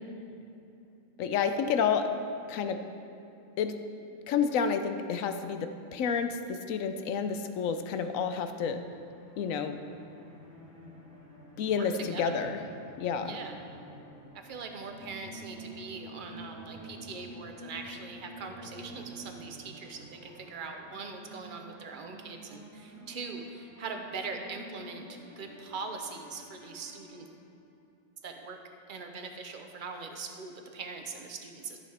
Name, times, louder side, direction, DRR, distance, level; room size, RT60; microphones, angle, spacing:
voice 1, 1.2-2.1 2.5-2.8 3.6-3.8 4.3-8.8 9.4-9.8 11.6-12.6 13.0-13.4, left 6 dB, 75° left, 8 dB, 1.0 m, -30 dB
sound 1, 8.9-27.6, right 1 dB, 20° left, 2.1 m, -49 dB
voice 2, 11.7-12.4 13.2-13.6 14.4-27.2 28.2-28.6 28.9-31.8, right 4 dB, 45° right, 4 dB, 0.8 m, -41 dB
13.5 x 7.1 x 3.4 m, 2.7 s
omnidirectional pair, 1.5 m